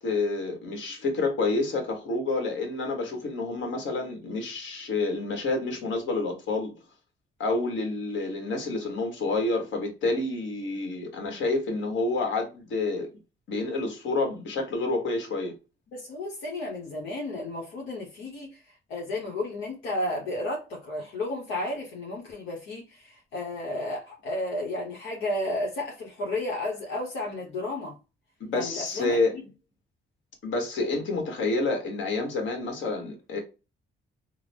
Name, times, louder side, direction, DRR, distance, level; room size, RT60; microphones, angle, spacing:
voice 1, 0.0-6.7 7.4-13.1 13.5-15.5 28.4-29.3 30.4-33.4, left 3 dB, 70° left, 1.3 m, -28 dB
voice 2, 15.9-18.6 18.9-28.0 28.5-29.5, left 1 dB, 90° left, 0.9 m, -33 dB
3.7 x 2.0 x 3.3 m
cardioid pair, 90°, 20 cm